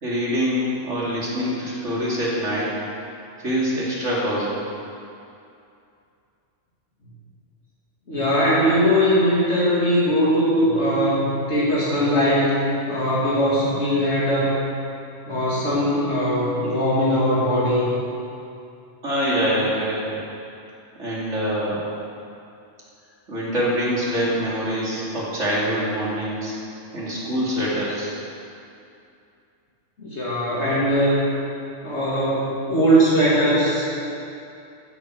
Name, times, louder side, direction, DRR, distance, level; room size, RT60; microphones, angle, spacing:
voice 1, 0.0-2.7 3.4-4.6 19.0-20.2 21.0-21.8 23.3-26.5 26.9-28.1, equal, 75° right, -6 dB, 3.3 m, -24 dB
voice 2, 8.1-14.6 15.3-17.9 30.0-31.2 31.8-33.9, equal, 65° left, -8 dB, 3.0 m, -20 dB
15.0 x 8.3 x 6.4 m, 2.6 s
omnidirectional pair, 1.3 m